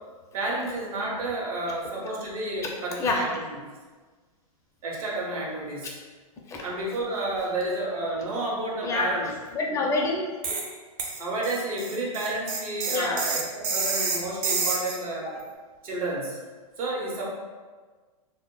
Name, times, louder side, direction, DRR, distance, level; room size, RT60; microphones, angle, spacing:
voice 1, 0.3-3.4 4.8-5.9 6.6-9.3 11.2-15.4 15.8-16.4 16.8-17.3, right 2 dB, 75° right, -2 dB, 0.8 m, -31 dB
voice 2, 8.8-9.2 9.5-10.5 12.9-13.3, left 3 dB, 15° left, -1 dB, 0.4 m, -27 dB
sound 1, 10.4-10.7 11.0-15.0, right 4 dB, 45° right, 0.5 m, -28 dB
2.1 x 2.0 x 3.6 m, 1.4 s
hypercardioid pair, 130°, 19 cm